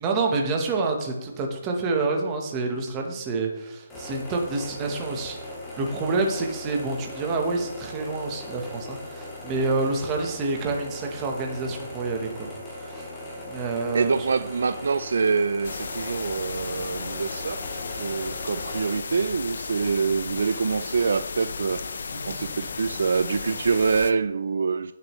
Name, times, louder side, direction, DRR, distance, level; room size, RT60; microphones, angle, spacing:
voice 1, 0.0-5.4 5.8-12.5 12.9-13.0 13.4-14.1 22.1-22.5, right 3 dB, 15° right, 1.0 m, -28 dB
sound 1, 3.9-18.9, left 1 dB, 5° left, 1.7 m, -39 dB
voice 2, 13.9-17.7 18.0-24.9, right 5 dB, 55° right, 0.3 m, -25 dB
sound 2, 15.6-24.1, left 5 dB, 50° left, 0.6 m, -34 dB
16.5 x 6.6 x 3.1 m
hypercardioid pair, 180°, 0 cm